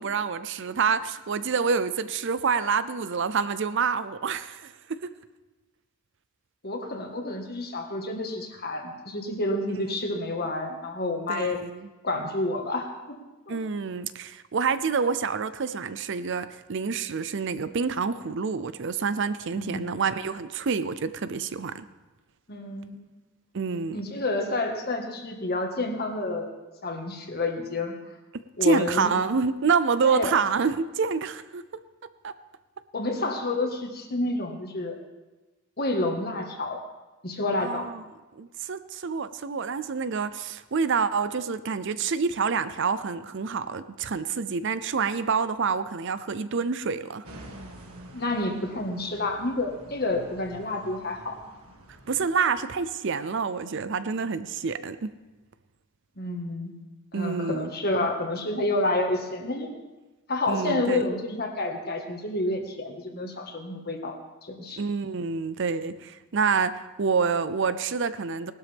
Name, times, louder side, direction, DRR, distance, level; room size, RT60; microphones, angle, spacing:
voice 1, 0.0-5.2 10.1-10.3 11.3-11.9 13.5-21.8 23.5-24.0 28.6-31.6 32.2-32.3 37.6-38.0 38.3-47.2 52.1-55.1 57.1-57.7 60.5-61.1 64.8-68.5, right 5 dB, 55° right, 13 dB, 0.5 m, -27 dB
voice 2, 6.6-11.6 12.0-13.2 13.5-13.6 19.5-19.8 22.5-23.0 23.9-26.5 26.8-27.9 28.6-29.1 30.0-30.3 32.9-35.0 35.8-36.8 37.2-37.9 48.1-51.4 56.2-56.8 57.1-59.7 60.3-64.2 64.4-64.8, left 2 dB, 45° left, 3 dB, 1.7 m, -29 dB
sound 1, 47.2-52.2, right 1 dB, 80° right, 1.8 m, -47 dB
19.0 x 12.5 x 3.5 m, 1.1 s
head